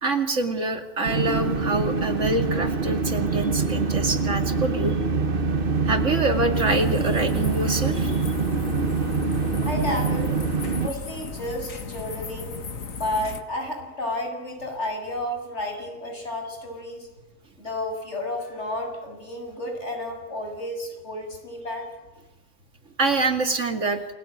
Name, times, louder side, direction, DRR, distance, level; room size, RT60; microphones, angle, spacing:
voice 1, 0.0-5.0 5.8-8.2 23.0-24.0, right 2 dB, 65° right, 6 dB, 2.8 m, -25 dB
sound 1, 1.0-10.9, right 4 dB, 45° right, 1.4 m, -25 dB
sound 2, 6.5-13.4, left 5 dB, 85° left, 2.0 m, -36 dB
voice 2, 9.6-10.4 10.8-12.6 13.0-17.1 17.6-21.9, left 1 dB, 60° left, 4 dB, 7.3 m, -31 dB
29.0 x 22.0 x 9.4 m, 1.2 s
omnidirectional pair, 1.4 m